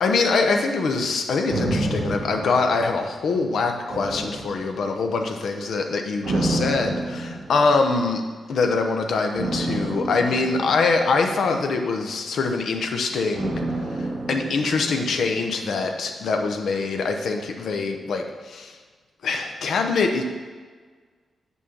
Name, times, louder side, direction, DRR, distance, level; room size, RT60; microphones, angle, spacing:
voice 1, 0.0-8.2 8.5-13.6 13.9-18.7 19.2-20.2, left 4 dB, 70° left, 4 dB, 0.9 m, -24 dB
sound 1, 1.5-3.4 3.9-5.2 6.2-7.9 9.3-11.7 13.3-15.5 15.8-15.9, right 2 dB, 50° right, 1.5 m, -29 dB
6.2 x 5.5 x 6.9 m, 1.5 s
wide cardioid pair, 160°, 0 cm